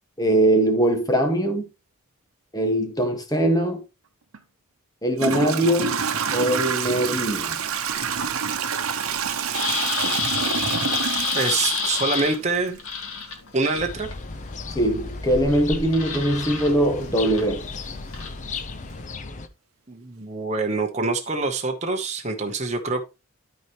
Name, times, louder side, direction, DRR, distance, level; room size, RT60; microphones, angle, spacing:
voice 1, 0.2-1.7 2.5-3.8 5.0-6.0 6.3-7.6 14.7-17.6, right 1 dB, 15° left, 1.6 m, -21 dB
Toilet flush / Trickle dribble, 4.3-4.4 5.1-12.9, right 6 dB, 75° right, 0.9 m, -27 dB
sound 1, 7.1-19.1, left 6 dB, 70° left, 2.3 m, -31 dB
voice 2, 11.3-12.8 13.5-14.1 19.9-23.0, right 3 dB, 30° right, 1.1 m, -25 dB
sound 2, 13.8-19.5, left 3 dB, 35° left, 0.7 m, -35 dB
13.0 x 4.6 x 3.1 m
head